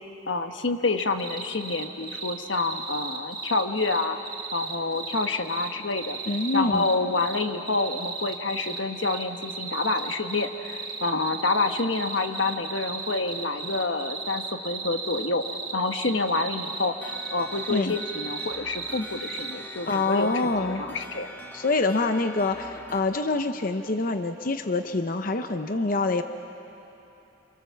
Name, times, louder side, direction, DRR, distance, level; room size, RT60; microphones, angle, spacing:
voice 1, 0.3-4.2 4.5-6.2 6.5-20.4 20.7-21.3, left 3 dB, 90° left, 7 dB, 1.3 m, -28 dB
sound 1, 1.0-19.5, right 4 dB, 25° right, 2.7 m, -35 dB
voice 2, 6.3-6.9 17.7-18.0 19.9-20.9 21.5-26.2, left 3 dB, 50° left, 7 dB, 0.8 m, -26 dB
sound 2, 17.0-23.0, left 1 dB, 10° left, 1.7 m, -44 dB
28.0 x 24.5 x 7.3 m, 3.0 s
head